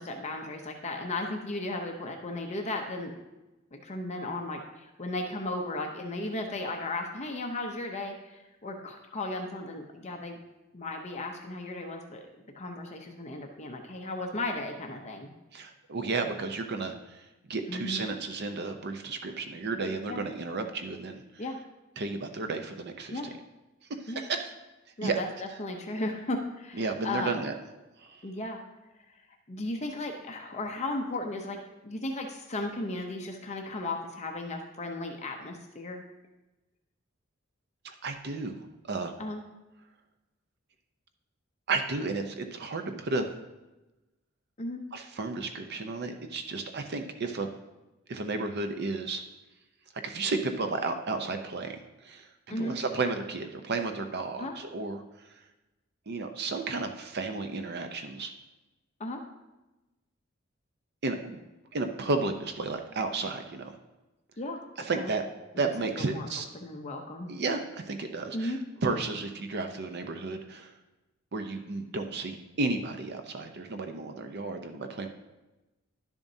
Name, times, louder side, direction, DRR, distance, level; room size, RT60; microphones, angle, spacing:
voice 1, 0.0-3.1 3.7-10.4 10.7-12.2 12.5-15.3 17.7-18.0 20.1-20.2 21.4-21.6 23.1-23.3 24.1-24.2 25.0-25.3 25.6-27.4 28.2-28.6 29.5-31.6 31.8-36.0 39.2-39.4 44.6-44.8 52.5-52.8 54.4-54.5 59.0-59.2 64.4-65.1 65.5-65.7 66.0-66.3 66.5-67.3 68.3-68.6, left 2 dB, 35° left, 3 dB, 0.7 m, -35 dB
voice 2, 15.5-21.4 22.0-23.3 23.9-24.5 25.0-25.2 26.7-27.5 28.0-28.2 37.8-39.2 41.7-43.3 44.9-47.5 48.1-49.2 50.0-55.0 56.1-58.3 61.0-61.4 61.7-63.7 64.8-65.2 65.6-66.5 67.3-70.7 71.3-75.1, right 3 dB, 55° right, 6 dB, 0.6 m, -33 dB
11.5 x 7.1 x 2.7 m, 1.0 s
head